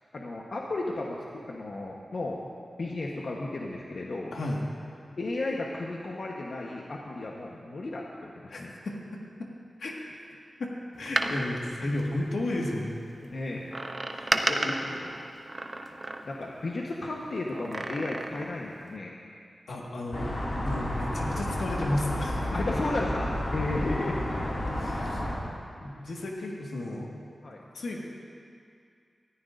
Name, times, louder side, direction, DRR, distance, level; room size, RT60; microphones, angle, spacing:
voice 1, 0.1-2.5 2.8-4.3 5.2-8.7 13.2-13.8 14.2-15.2 15.8-19.1 20.9-21.1 22.5-24.2 27.4-27.6, left 2 dB, 60° left, -2 dB, 1.1 m, -34 dB
voice 2, 4.3-4.6 8.5-9.5 9.8-10.1 10.6-13.0 14.1-14.5 19.7-22.6 24.7-25.2 25.8-27.1 27.7-28.0, left 1 dB, 85° left, -2 dB, 1.8 m, -33 dB
Door, 10.9-12.8 13.7-16.6 17.5-18.6 19.0-19.1, right 2 dB, 30° right, 0.7 m, -33 dB
sound 1, 20.1-25.4, left 1 dB, 40° left, 2.4 m, -31 dB
19.5 x 14.0 x 2.6 m, 2.3 s
wide cardioid pair, 115°, 0 cm